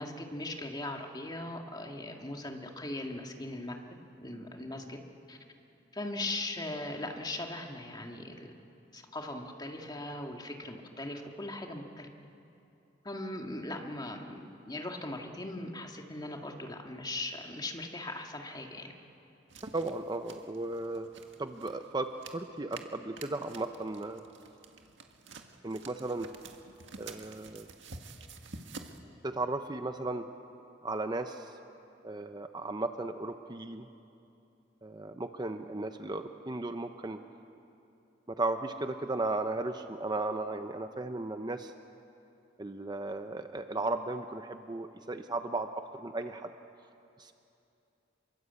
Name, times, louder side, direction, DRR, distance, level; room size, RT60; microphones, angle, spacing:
voice 1, 0.0-3.8 4.2-5.0 5.3-5.4 5.9-8.5 8.9-12.1 13.0-18.9, left 2 dB, 25° left, 2 dB, 2.1 m, -39 dB
sound 1, 19.5-29.0, right 4 dB, 85° right, 1.8 m, -50 dB
voice 2, 19.7-21.1 21.4-24.2 25.6-26.3 27.0-27.7 29.2-30.2 30.8-31.5 32.0-33.9 34.8-37.2 38.3-41.7 42.6-46.5 47.2-47.3, right 2 dB, 25° right, 7 dB, 0.8 m, -35 dB
27.0 x 23.0 x 8.3 m, 2.8 s
head